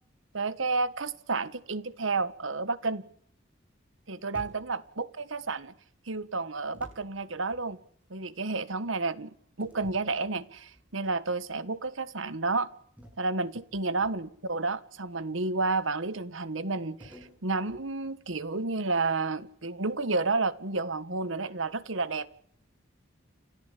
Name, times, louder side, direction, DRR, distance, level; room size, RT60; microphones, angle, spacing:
voice 1, 0.3-3.0 4.1-5.7 6.1-7.8 8.1-12.7 13.2-22.3, right 3 dB, 75° right, 1.4 m, -31 dB
sound 1, 4.3-5.0 6.7-8.1 9.6-10.9 11.4-11.6 13.0-14.5 17.0-18.6, equal, 5° right, 8.0 m, -52 dB
29.5 x 14.0 x 8.3 m
head